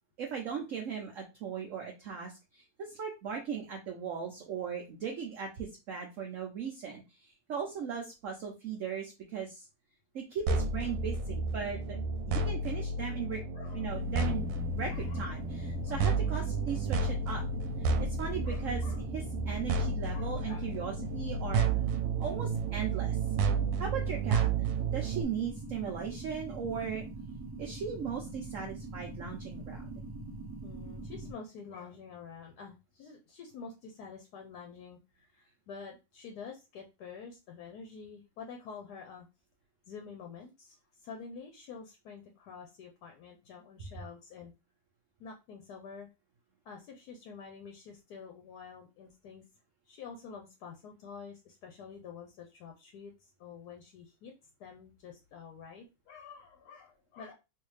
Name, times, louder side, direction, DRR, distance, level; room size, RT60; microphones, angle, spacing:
voice 1, 0.2-9.6 10.1-12.0 12.3-13.4 13.7-17.4 17.8-18.8 19.1-21.7 22.2-23.2 23.8-24.6 24.9-27.1 27.6-30.0, right 6 dB, 60° right, 1 dB, 0.8 m, -38 dB
sound 1, 10.5-25.2, right 4 dB, 90° right, 1.3 m, -31 dB
voice 2, 13.5-13.9 14.9-15.3 15.9-16.4 17.3-17.4 18.4-19.0 20.1-20.7 30.6-39.3 39.9-44.5 45.2-46.1 46.6-49.4 49.8-54.3 54.6-57.3, left 5 dB, 70° left, 3 dB, 1.1 m, -48 dB
sound 2, 13.9-31.3, right 2 dB, 20° right, 0.6 m, -43 dB
3.3 x 2.7 x 3.1 m, 0.27 s
omnidirectional pair, 1.9 m